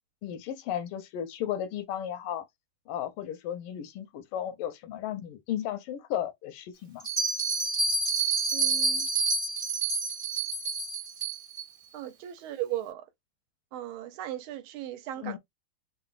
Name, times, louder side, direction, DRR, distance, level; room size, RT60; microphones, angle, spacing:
voice 1, 0.2-2.4 2.9-7.1 15.2-15.4, left 10 dB, 90° left, 1.6 m, -34 dB
Bell, 7.0-11.6, right 3 dB, 35° right, 0.9 m, -28 dB
voice 2, 8.5-9.1 11.9-13.0 13.7-15.4, right 13 dB, 80° right, 1.4 m, -37 dB
3.9 x 2.1 x 2.3 m
omnidirectional pair, 2.4 m